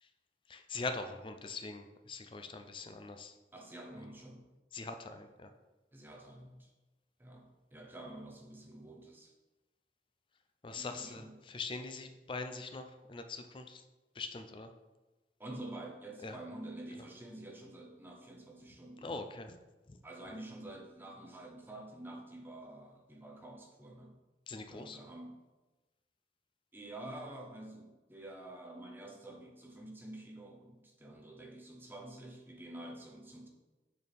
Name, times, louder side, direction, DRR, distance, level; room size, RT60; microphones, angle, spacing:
voice 1, 0.5-3.3 4.7-5.5 10.6-13.8 14.2-14.7 16.2-16.4 19.0-19.6 19.9-20.0 24.5-25.0, left 3 dB, 30° left, 7 dB, 0.4 m, -42 dB
voice 2, 3.5-4.5 5.9-6.7 7.2-9.3 10.8-11.3 15.4-19.1 20.0-24.2 24.7-25.4 26.7-33.5, right 1 dB, 10° right, 1 dB, 0.8 m, -48 dB
6.6 x 4.2 x 3.5 m, 1.1 s
head